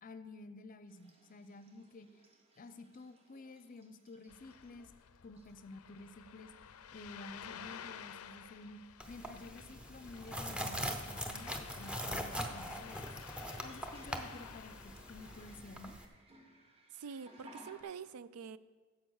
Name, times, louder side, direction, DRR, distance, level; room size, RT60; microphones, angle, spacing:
voice 1, 0.0-2.1 2.6-4.9 5.2-6.5 6.9-8.8 9.1-13.1 13.6-16.0, left 2 dB, 40° left, 11 dB, 0.6 m, -51 dB
sound 1, 0.9-5.0 5.3-5.8 6.7-6.8 7.3-7.8 8.0-8.4 10.4-10.5 13.5-17.8, right 1 dB, 30° right, 1.3 m, -61 dB
Ocean, 4.3-15.6, left 8 dB, 85° left, 0.5 m, -53 dB
sound 2, 9.0-16.1, equal, 5° right, 0.6 m, -42 dB
voice 2, 16.9-18.6, right 6 dB, 90° right, 16 dB, 0.4 m, -46 dB
9.9 x 7.2 x 6.4 m, 1.4 s
head